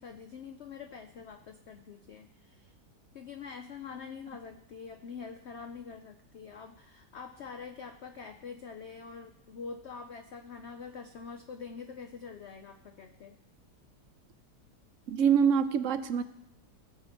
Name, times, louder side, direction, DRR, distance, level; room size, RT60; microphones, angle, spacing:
voice 1, 0.0-2.7 3.1-13.4, left 5 dB, 60° left, 6 dB, 0.7 m, -45 dB
voice 2, 15.1-16.2, right 7 dB, 65° right, 12 dB, 0.8 m, -25 dB
18.0 x 7.1 x 4.4 m, 0.80 s
omnidirectional pair, 1.8 m